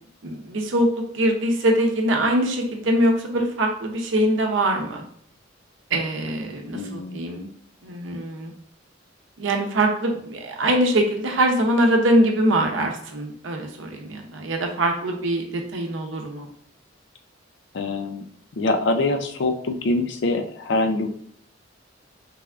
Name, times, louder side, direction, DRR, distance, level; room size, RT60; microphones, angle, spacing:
voice 1, 0.2-5.0 5.9-7.5 7.8-8.5 9.4-16.5, right 1 dB, 85° right, 2 dB, 0.7 m, -23 dB
voice 2, 6.7-7.2 12.8-12.9 17.7-18.2 18.6-21.1, left 2 dB, 65° left, 7 dB, 0.4 m, -24 dB
3.4 x 3.4 x 2.4 m, 0.64 s
head